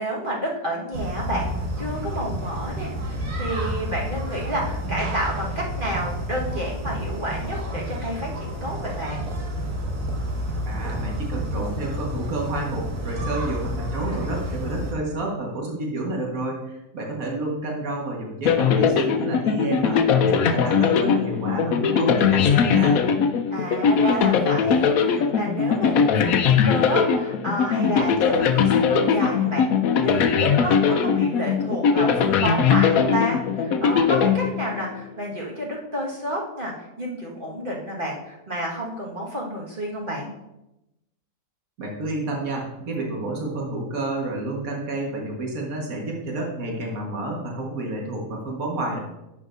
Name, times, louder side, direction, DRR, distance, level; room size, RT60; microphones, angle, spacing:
voice 1, 0.0-1.5 1.8-9.3 23.5-29.6 30.0-40.3, equal, 35° right, -4 dB, 1.8 m, -30 dB
sound 1, 0.9-14.9, equal, 80° right, 2.0 m, -30 dB
voice 2, 10.7-23.0 41.8-49.0, right 2 dB, 65° right, -1 dB, 2.0 m, -29 dB
sound 2, 18.5-35.0, left 6 dB, 70° left, 1.1 m, -20 dB
11.0 x 7.4 x 2.7 m, 0.91 s
omnidirectional pair, 1.6 m